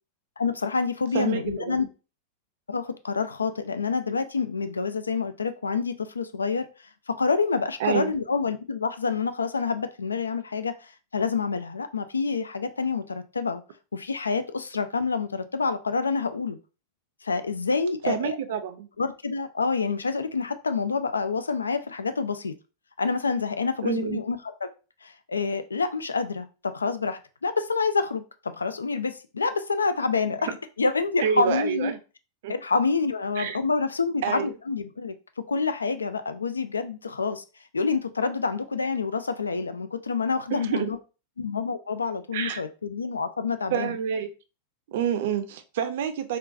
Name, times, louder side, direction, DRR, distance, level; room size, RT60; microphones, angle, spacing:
voice 1, 0.4-1.8 2.7-6.7 7.1-13.6 13.9-16.6 17.2-18.4 19.0-22.5 23.0-24.7 25.0-30.5 30.8-31.9 32.5-35.1 35.5-37.4 37.7-41.0 41.4-44.0, left 4 dB, 75° left, 0.3 m, -27 dB
voice 2, 1.1-1.9 7.8-8.1 18.1-18.9 23.8-24.2 31.2-32.0 32.4-32.5 33.4-33.6 34.2-34.5 40.5-40.9 42.3-42.6 43.7-44.3 44.9-46.4, right 8 dB, 55° right, 0.4 m, -28 dB
3.6 x 2.4 x 2.6 m
figure-of-eight pair, 90°, 0 cm